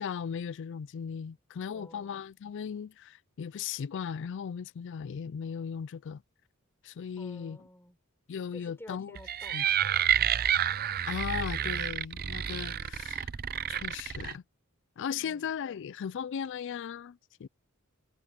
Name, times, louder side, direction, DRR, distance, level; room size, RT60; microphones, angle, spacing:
voice 1, 0.0-6.2 6.8-7.6 8.3-9.2 9.5-9.7 11.1-13.3 13.7-14.4 15.0-17.5, left 7 dB, 55° left, 0.4 m, -37 dB
voice 2, 1.7-2.1 7.2-8.0 8.5-9.6 15.2-15.4, left 1 dB, 10° left, 4.5 m, -51 dB
sound 1, 9.2-14.3, right 9 dB, 45° right, 0.5 m, -29 dB
head